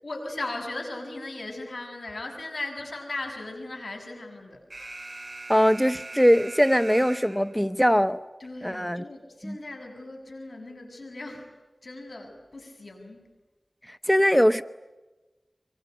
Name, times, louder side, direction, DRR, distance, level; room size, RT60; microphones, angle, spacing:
voice 1, 0.0-4.7 8.4-11.5 11.8-13.3, left 2 dB, 75° left, 4 dB, 7.4 m, -37 dB
Alarm, 4.7-7.7, right 2 dB, 50° right, 2.2 m, -41 dB
voice 2, 5.5-8.2 8.6-9.0 9.4-9.6 13.9-14.6, equal, 5° left, 13 dB, 0.8 m, -21 dB
25.0 x 24.5 x 9.4 m, 1.1 s
wide cardioid pair, 45°, 0 cm